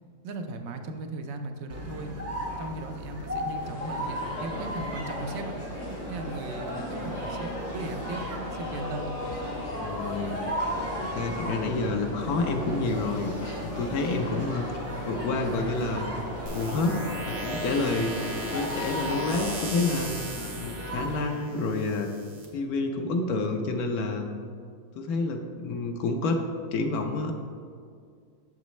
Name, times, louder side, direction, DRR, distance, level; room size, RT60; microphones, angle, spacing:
voice 1, 0.2-2.1 2.6-5.5 6.1-8.2 8.5-9.1, right 3 dB, 65° right, 5 dB, 1.0 m, -37 dB
sound 1, 1.7-21.4, equal, 25° right, 0.3 m, -37 dB
sound 2, 3.5-19.6, left 1 dB, 90° left, 2.4 m, -37 dB
voice 2, 9.8-10.4 11.1-13.3 13.6-14.7 15.1-16.1 16.5-17.0 17.3-18.2 18.5-20.1 20.5-22.1 22.5-24.2 25.0-26.4 26.7-27.3, left 3 dB, 70° left, 4 dB, 1.1 m, -28 dB
sound 3, 16.5-22.5, right 1 dB, 85° right, 1.7 m, -38 dB
7.3 x 7.0 x 3.1 m, 2.1 s
omnidirectional pair, 1.7 m